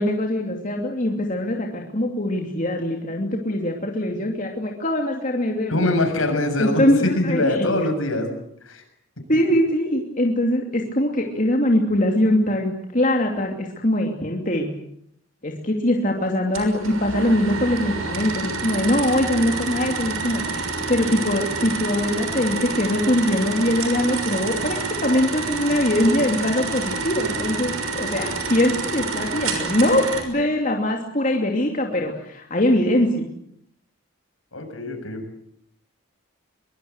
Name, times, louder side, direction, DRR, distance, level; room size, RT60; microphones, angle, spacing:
voice 1, 0.0-5.8 6.6-7.7 9.3-14.7 15.4-33.2, left 1 dB, 35° left, 1 dB, 2.8 m, -22 dB
voice 2, 5.7-8.3 8.6-8.8 34.5-35.4, left 1 dB, 75° left, 5 dB, 7.0 m, -23 dB
sound 1, 16.5-30.2, right 4 dB, 85° right, 6.2 m, -28 dB
23.0 x 23.0 x 8.1 m, 0.71 s
head